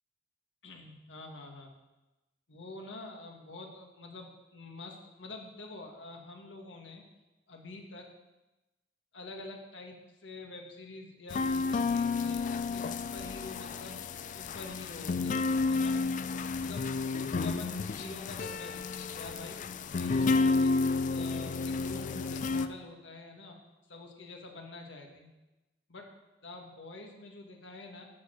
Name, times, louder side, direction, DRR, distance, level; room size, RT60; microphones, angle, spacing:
voice 1, 0.6-1.7 2.5-7.0 7.5-8.1 9.1-14.0 14.2-16.0 16.6-16.8 17.1-19.6 19.9-23.6 23.9-25.3 25.9-26.1 26.4-28.1, left 3 dB, 90° left, 2 dB, 1.5 m, -47 dB
sound 1, 11.3-22.7, left 4 dB, 45° left, 0.3 m, -31 dB
12.5 x 4.5 x 6.2 m, 1.0 s
head